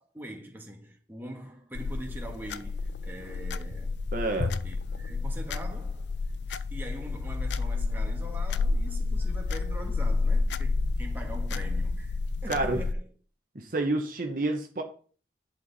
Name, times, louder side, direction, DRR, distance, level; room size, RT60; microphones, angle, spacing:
voice 1, 0.0-4.0 4.6-6.1 6.5-13.1, right 1 dB, 10° right, 1.7 m, -43 dB
sound 1, 1.7-12.9, left 3 dB, 85° left, 0.5 m, -30 dB
voice 2, 4.1-4.6 12.5-12.8 13.5-14.8, right 2 dB, 50° right, 1.1 m, -29 dB
10.5 x 5.8 x 4.2 m
head